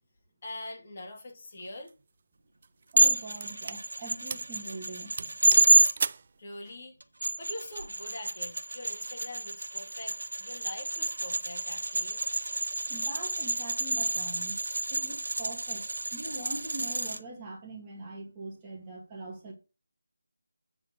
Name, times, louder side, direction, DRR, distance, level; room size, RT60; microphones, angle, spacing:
voice 1, 0.4-1.9 6.4-7.0 7.4-12.2, left 1 dB, 35° left, 2.4 m, -43 dB
sound 1, 1.6-1.9 2.6-3.8 4.3-4.5 4.8-4.9 5.2-6.3, right 5 dB, 35° right, 0.4 m, -35 dB
voice 2, 2.9-5.1 12.9-14.6 14.9-15.8 16.1-19.5, right 2 dB, 15° right, 2.0 m, -42 dB
sound 2, 3.0-5.9 7.0-17.2, right 2 dB, 80° right, 1.5 m, -28 dB
8.7 x 4.3 x 6.5 m
figure-of-eight pair, 170°, 0 cm